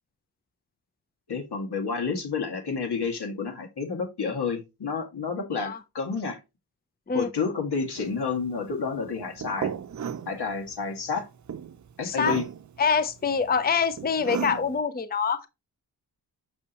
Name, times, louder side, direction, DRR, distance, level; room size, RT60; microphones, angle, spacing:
voice 1, 1.3-6.4 7.1-9.7 10.3-11.3 12.0-12.4, left 5 dB, 75° left, 2.0 m, -30 dB
sound 1, 8.0-14.8, right 7 dB, 45° right, 0.6 m, -36 dB
voice 2, 12.0-12.4 12.8-15.5, left 5 dB, 25° left, 0.6 m, -25 dB
6.6 x 6.2 x 2.9 m
wide cardioid pair, 90°, 39 cm